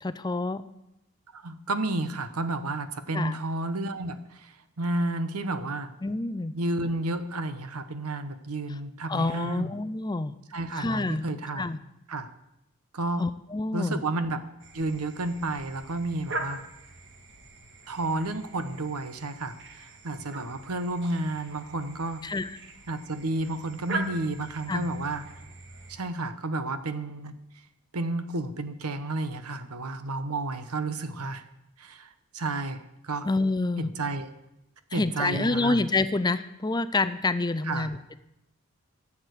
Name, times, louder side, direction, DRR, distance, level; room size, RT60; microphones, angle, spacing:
voice 1, 0.0-0.6 3.1-3.3 6.0-6.5 9.1-10.3 10.8-11.2 11.6-11.8 13.2-14.0 22.2-22.5 24.7-24.9 33.2-33.9 34.9-38.1, left 3 dB, 20° left, 13 dB, 0.4 m, -27 dB
voice 2, 1.3-5.9 6.5-9.7 10.5-11.7 12.1-12.3 12.9-13.3 13.7-14.4 14.7-16.6 17.9-22.2 22.9-25.2 25.9-27.3 27.9-31.4 31.8-33.3 33.8-34.3 34.9-35.8 37.6-37.9, right 2 dB, 85° right, 11 dB, 1.1 m, -31 dB
sound 1, 14.6-26.0, right 2 dB, 55° right, 1.6 m, -41 dB
14.5 x 7.3 x 8.3 m, 0.86 s
head